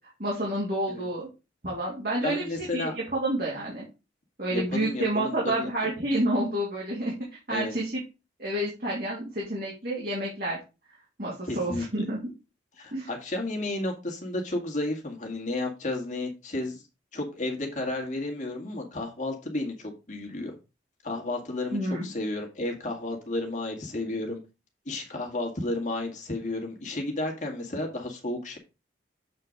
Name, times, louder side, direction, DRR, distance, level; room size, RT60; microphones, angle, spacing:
voice 1, 0.2-1.3 1.6-3.8 4.4-7.1 7.5-7.9 8.4-10.6 11.2-12.2 12.9-13.1 21.7-22.1, right 1 dB, 50° right, -4 dB, 2.8 m, -29 dB
voice 2, 2.2-3.0 4.5-5.7 7.5-7.7 11.5-11.9 12.8-16.8 17.1-20.5 21.0-24.4 24.9-28.6, left 2 dB, 40° left, 2 dB, 2.0 m, -32 dB
7.7 x 4.4 x 5.2 m, 0.29 s
head